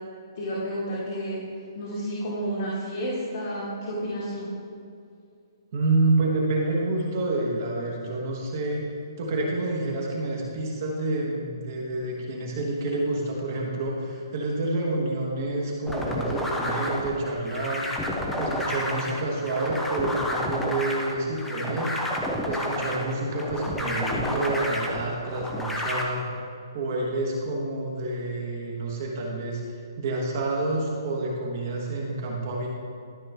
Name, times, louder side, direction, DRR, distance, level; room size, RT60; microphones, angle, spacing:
voice 1, 0.4-1.4 1.8-4.5, equal, 45° left, -8 dB, 1.7 m, -31 dB
voice 2, 5.7-8.9 9.2-17.9 18.4-22.0 22.5-26.3 26.7-29.6 30.0-32.7, right 2 dB, 35° right, -2 dB, 1.2 m, -28 dB
sound 1, 15.9-26.0, left 1 dB, 5° left, 0.5 m, -30 dB
12.5 x 5.0 x 3.4 m, 2.4 s
hypercardioid pair, 170°, 2 cm